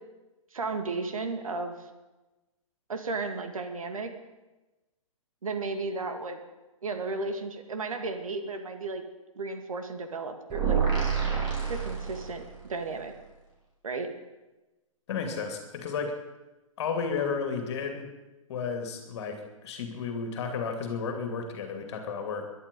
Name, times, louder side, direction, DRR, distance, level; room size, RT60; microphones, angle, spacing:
voice 1, 0.5-1.8 2.9-4.1 5.4-6.4 6.8-9.0 9.4-10.8 11.7-13.1 13.8-14.1, right 3 dB, 75° right, 6 dB, 2.2 m, -34 dB
sound 1, 10.5-12.6, right 6 dB, 25° right, 4.7 m, -28 dB
voice 2, 15.1-16.2 16.8-18.1 18.5-22.5, left 5 dB, 50° left, 5 dB, 2.5 m, -32 dB
22.0 x 11.0 x 5.3 m, 1.1 s
figure-of-eight pair, 120°, 18 cm